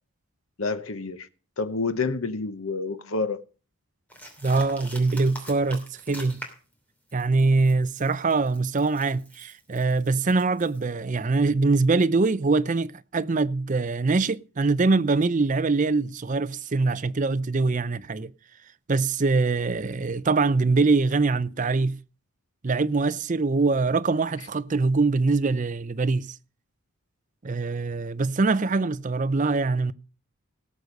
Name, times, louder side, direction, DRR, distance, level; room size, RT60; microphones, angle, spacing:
voice 1, 0.6-1.3 1.6-3.4, left 4 dB, 65° left, 0.9 m, -28 dB
sound 1, 4.1-6.7 7.1-10.9, equal, 5° left, 2.8 m, -44 dB
voice 2, 4.4-6.4 7.1-18.3 18.9-22.0 22.6-26.4 27.4-29.9, right 3 dB, 35° right, 0.5 m, -23 dB
18.0 x 6.6 x 5.2 m
head